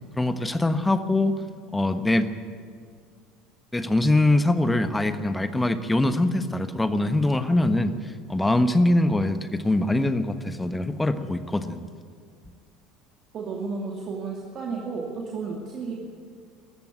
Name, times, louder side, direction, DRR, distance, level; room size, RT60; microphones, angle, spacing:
voice 1, 0.2-1.4 1.7-2.3 3.7-11.8, left 2 dB, 10° left, 10 dB, 1.3 m, -23 dB
voice 2, 13.3-15.9, right 4 dB, 40° right, -1 dB, 2.6 m, -32 dB
20.0 x 14.5 x 9.4 m, 2.1 s
figure-of-eight pair, 70°, 0 cm